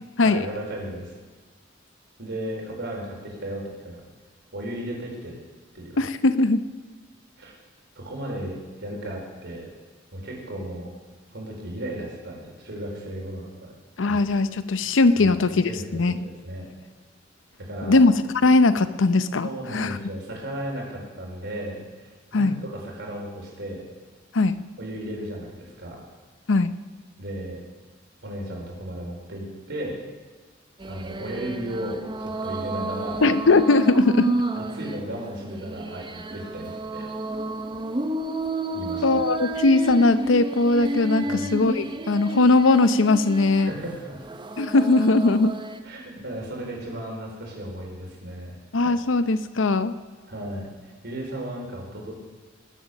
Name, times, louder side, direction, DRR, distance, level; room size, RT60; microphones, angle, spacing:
voice 1, 0.2-1.1 2.2-4.0 4.5-5.3 5.7-6.0 7.4-7.5 7.9-9.7 10.1-10.9 11.3-13.7 14.1-14.2 15.2-15.4 15.6-16.7 17.6-18.0 19.4-23.9 24.8-26.0 27.2-27.6 28.2-30.0 30.9-33.2 34.5-37.1 38.7-39.3 41.2-41.6 43.6-44.2 45.8-48.6 50.3-52.1, right 1 dB, 65° right, -1 dB, 4.3 m, -35 dB
voice 2, 6.0-6.6 14.0-16.2 17.8-18.1 18.4-20.0 22.3-22.5 24.3-24.6 26.5-26.7 33.2-34.3 39.0-43.7 44.6-45.5 48.7-49.9, left 3 dB, 75° left, 13 dB, 0.7 m, -20 dB
Temple chanting Mongolia, 30.8-45.8, right 2 dB, 25° right, 0.7 m, -30 dB
19.5 x 8.1 x 6.5 m, 1.4 s
head